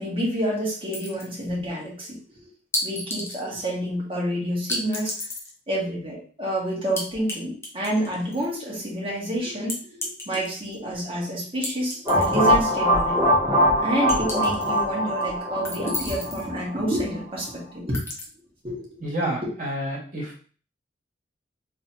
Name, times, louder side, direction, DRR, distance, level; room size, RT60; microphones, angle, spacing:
voice 1, 0.0-2.5 2.8-5.1 5.7-13.2 13.5-18.0 18.6-19.1, right 1 dB, 30° right, -5 dB, 1.8 m, -29 dB
sound 1, 0.9-1.5 2.7-3.4 4.7-5.5 7.0-7.4 7.6-8.5 9.7-10.8 11.6-12.6 13.0-13.1 14.1-14.8 15.6-16.5 17.9-18.2, left 1 dB, 15° left, 1.0 m, -32 dB
sound 2, 12.1-16.8, equal, 10° right, 2.1 m, -22 dB
voice 2, 19.0-20.4, right 1 dB, 50° right, -4 dB, 2.0 m, -29 dB
3.9 x 3.4 x 2.8 m, 0.41 s
head